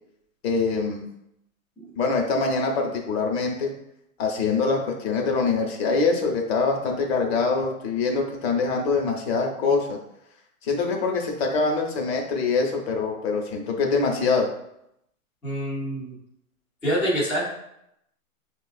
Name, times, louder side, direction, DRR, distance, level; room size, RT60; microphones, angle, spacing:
voice 1, 0.4-1.1 2.0-3.7 4.2-10.0 10.6-14.5, left 4 dB, 45° left, 1 dB, 1.0 m, -24 dB
voice 2, 15.4-16.2 16.8-17.4, equal, 5° left, -9 dB, 0.5 m, -26 dB
5.8 x 2.4 x 2.4 m, 0.78 s
hypercardioid pair, 130°, 42 cm